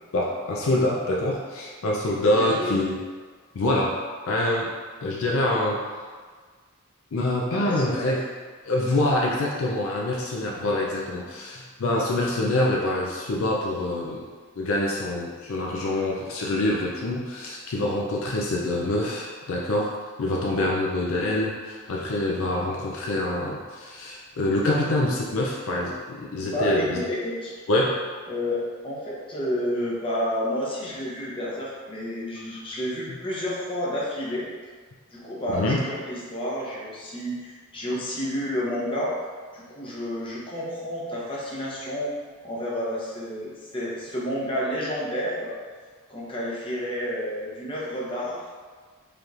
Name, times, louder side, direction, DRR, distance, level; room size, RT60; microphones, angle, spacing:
voice 1, 0.1-3.0 3.5-4.0 4.3-4.7 5.0-5.8 7.1-8.2 8.7-14.3 14.6-19.9 20.2-27.0 27.7-28.1 35.5-35.8, left 1 dB, 60° left, -2 dB, 0.4 m, -25 dB
voice 2, 2.2-2.7 7.5-8.1 26.4-27.5 28.3-28.6 28.8-34.5 35.1-39.1 39.5-42.1 42.4-45.5 46.1-48.4, equal, 25° left, -6 dB, 0.8 m, -30 dB
5.0 x 3.1 x 2.4 m, 1.5 s
head